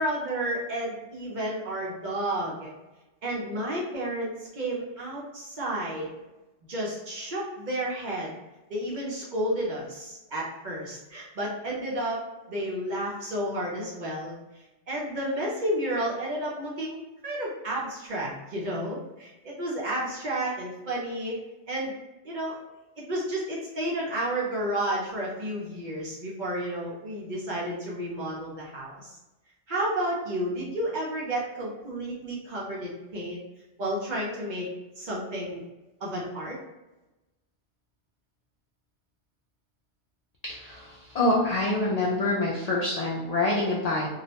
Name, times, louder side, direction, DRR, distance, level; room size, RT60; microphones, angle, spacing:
voice 1, 0.0-2.7 3.2-6.1 6.7-8.3 8.7-12.2 12.5-21.4 21.7-21.9 22.2-22.6 23.0-29.2 29.7-33.4 33.8-34.7 35.0-35.6 36.0-36.6, right 1 dB, 50° right, -4 dB, 0.6 m, -31 dB
voice 2, 40.4-44.1, left 2 dB, 65° left, -4 dB, 0.4 m, -26 dB
2.3 x 2.0 x 2.8 m, 1.0 s
omnidirectional pair, 1.2 m